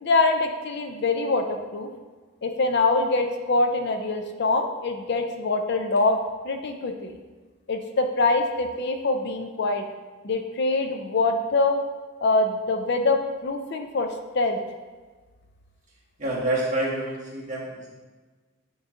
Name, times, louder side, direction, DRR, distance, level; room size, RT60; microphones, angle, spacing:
voice 1, 0.0-1.9 2.4-6.2 6.4-7.1 7.7-9.8 10.2-11.8 12.2-14.1 14.3-14.6, left 3 dB, 50° left, 5 dB, 0.5 m, -24 dB
voice 2, 16.2-17.9, right 1 dB, 35° right, -5 dB, 1.5 m, -27 dB
8.8 x 3.1 x 3.7 m, 1.3 s
head